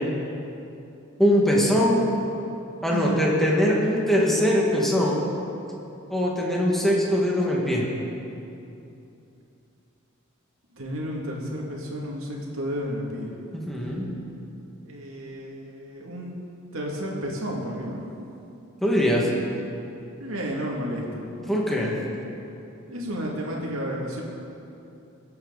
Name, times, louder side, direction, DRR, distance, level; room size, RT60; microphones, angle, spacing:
voice 1, 1.2-2.0 2.8-5.2 6.1-7.8 13.5-14.1 18.8-19.3 21.5-21.9, equal, ahead, -4 dB, 1.9 m, -22 dB
voice 2, 10.7-13.3 14.8-16.3 16.7-18.0 20.2-21.3 22.9-24.2, equal, 75° right, -2 dB, 2.4 m, -32 dB
22.5 x 8.6 x 4.1 m, 2.8 s
head